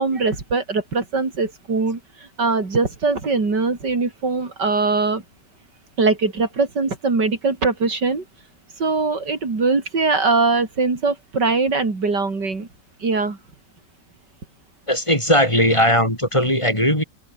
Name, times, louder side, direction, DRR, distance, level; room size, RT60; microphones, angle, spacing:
voice 1, 0.0-2.0 2.4-5.2 6.0-8.2 8.8-12.7 13.0-13.4, right 4 dB, 75° right, 4.6 m, -21 dB
voice 2, 14.9-17.0, equal, 15° left, 8.0 m, -18 dB
open air
omnidirectional pair, 1.9 m